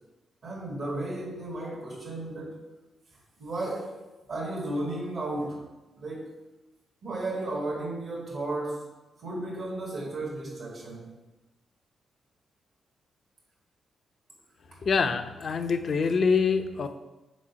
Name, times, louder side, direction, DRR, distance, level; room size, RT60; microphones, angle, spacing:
voice 1, 0.4-2.6 3.4-4.0 4.3-5.6 6.0-6.3 7.0-8.9 9.2-11.1 14.7-14.8, right 2 dB, 65° right, -3 dB, 1.5 m, -34 dB
voice 2, 14.8-16.9, left 5 dB, 60° left, 8 dB, 0.5 m, -25 dB
5.1 x 4.0 x 5.6 m, 1.1 s
hypercardioid pair, 45°, 0 cm